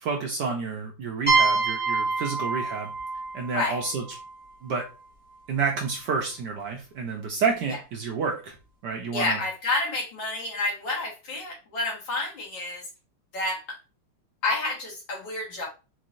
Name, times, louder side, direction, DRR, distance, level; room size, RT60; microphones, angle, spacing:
voice 1, 0.0-2.9 3.3-4.0 4.6-4.9 5.5-8.5 8.8-9.4, right 5 dB, 65° right, 1 dB, 1.1 m, -29 dB
sound 1, 1.3-4.9, right 4 dB, 10° left, 0.5 m, -26 dB
voice 2, 9.1-12.8 13.3-13.8 14.4-15.7, left 2 dB, 65° left, -2 dB, 2.1 m, -29 dB
4.6 x 3.1 x 2.5 m, 0.30 s
omnidirectional pair, 2.3 m